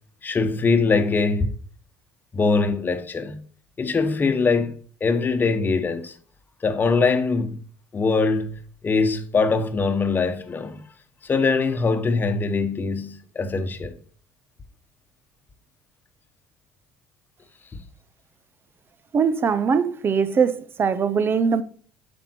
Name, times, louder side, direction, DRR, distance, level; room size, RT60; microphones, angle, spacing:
voice 1, 0.2-1.5 2.3-3.4 3.8-6.1 6.6-7.6 7.9-10.8 11.2-14.0 17.7-17.8, left 4 dB, 30° left, 1.2 m, -22 dB
voice 2, 19.1-21.6, right 6 dB, 35° right, 0.8 m, -21 dB
7.6 x 5.3 x 4.4 m
supercardioid pair, 80°, 6 cm